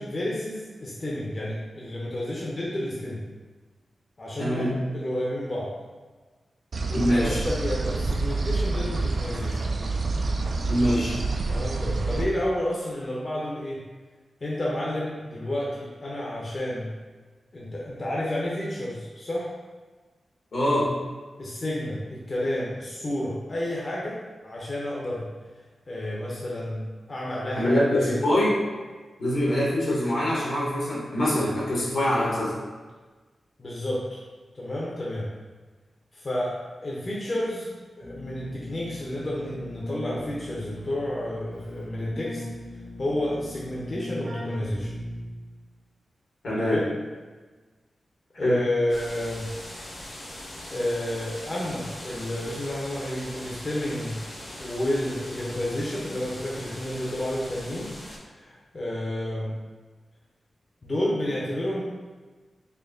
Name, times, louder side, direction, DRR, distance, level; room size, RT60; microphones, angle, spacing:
voice 1, 0.0-3.2 4.2-4.7 4.9-5.7 6.9-9.6 11.5-13.8 14.4-16.9 17.5-19.5 21.4-25.3 25.9-28.3 33.6-34.2 34.5-35.3 36.1-36.6 36.8-37.7 38.0-42.4 43.0-44.9 46.7-46.9 48.4-49.5 50.7-54.2 54.6-57.9 58.3-59.5 60.8-61.8, left 1 dB, 40° left, -5 dB, 0.7 m, -30 dB
voice 2, 4.4-4.7 6.9-7.4 10.7-11.2 20.5-20.9 27.5-28.5 29.2-32.5 46.4-46.8 48.3-48.6, left 1 dB, 80° left, -6 dB, 1.4 m, -24 dB
sound 1, 6.7-12.2, right 3 dB, 60° right, 0.4 m, -27 dB
Keyboard (musical), 38.0-45.6, left 1 dB, 80° right, 0.9 m, -38 dB
sound 2, 48.9-58.2, left 1 dB, 65° left, 1.0 m, -41 dB
4.4 x 2.7 x 2.6 m, 1.3 s
wide cardioid pair, 80°, 0 cm